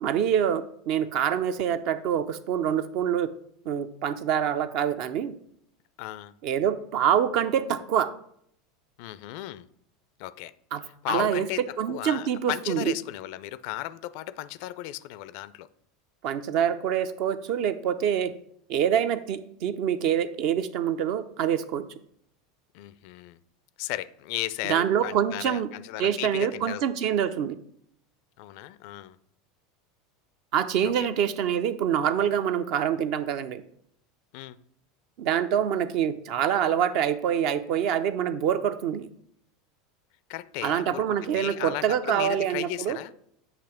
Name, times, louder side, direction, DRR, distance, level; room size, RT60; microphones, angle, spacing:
voice 1, 0.0-3.3 3.7-5.3 6.4-8.1 10.7-11.5 11.8-12.9 16.2-18.3 18.7-21.8 24.7-25.7 26.0-27.6 30.5-33.6 35.2-39.1 40.6-43.0, right 9 dB, 55° right, 11 dB, 0.5 m, -26 dB
voice 2, 6.0-6.3 9.0-9.7 10.2-10.5 10.8-15.7 22.7-23.4 23.8-26.8 28.4-29.2 30.8-31.1 34.3-34.6 40.3-43.1, left 15 dB, 55° left, 15 dB, 0.3 m, -35 dB
8.2 x 2.9 x 5.7 m, 0.67 s
figure-of-eight pair, 80°, 0 cm